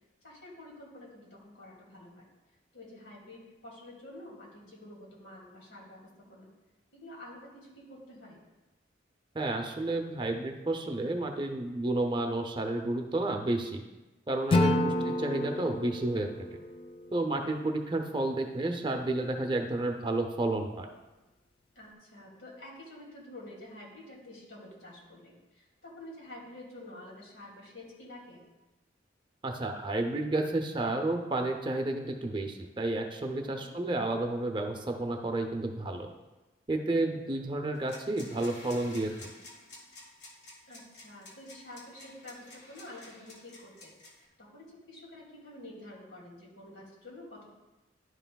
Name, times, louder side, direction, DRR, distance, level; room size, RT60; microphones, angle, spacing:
voice 1, 0.2-2.3 2.7-6.5 6.9-8.4 14.9-15.2 21.7-28.4 33.5-33.8 40.7-43.9 44.4-47.5, left 1 dB, 80° left, -3 dB, 2.4 m, -49 dB
voice 2, 9.3-13.8 14.3-14.9 15.2-16.5 17.1-20.9 29.4-36.1 36.7-39.1, right 2 dB, 25° right, 4 dB, 0.5 m, -31 dB
Acoustic guitar / Strum, 14.5-17.7, left 1 dB, 30° left, 0.3 m, -30 dB
sound 1, 37.8-44.3, left 2 dB, 65° left, 1.6 m, -50 dB
11.0 x 5.7 x 2.3 m, 1.1 s
head